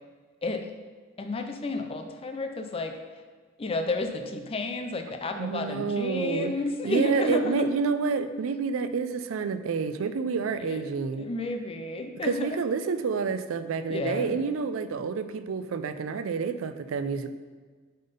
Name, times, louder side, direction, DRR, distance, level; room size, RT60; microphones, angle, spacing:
voice 1, 1.2-2.9 3.6-7.7 10.6-10.8 11.2-12.6 13.9-14.4, left 2 dB, 30° left, 5 dB, 0.4 m, -31 dB
voice 2, 5.4-6.5 6.8-11.3 12.2-17.3, right 5 dB, 75° right, 11 dB, 0.4 m, -29 dB
5.3 x 3.8 x 5.2 m, 1.5 s
head